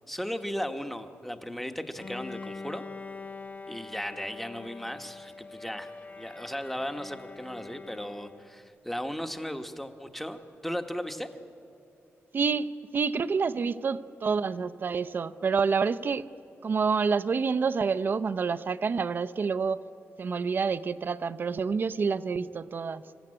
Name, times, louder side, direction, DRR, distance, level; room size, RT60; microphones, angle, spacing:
voice 1, 0.1-2.8 3.7-11.3, equal, 5° left, 7 dB, 1.2 m, -36 dB
Bowed string instrument, 1.9-8.7, left 4 dB, 30° left, 0.5 m, -44 dB
voice 2, 12.3-16.3 16.6-19.8 20.2-23.0, right 5 dB, 45° right, 12 dB, 0.6 m, -28 dB
26.5 x 14.5 x 9.9 m, 2.7 s
wide cardioid pair, 135°, 5 cm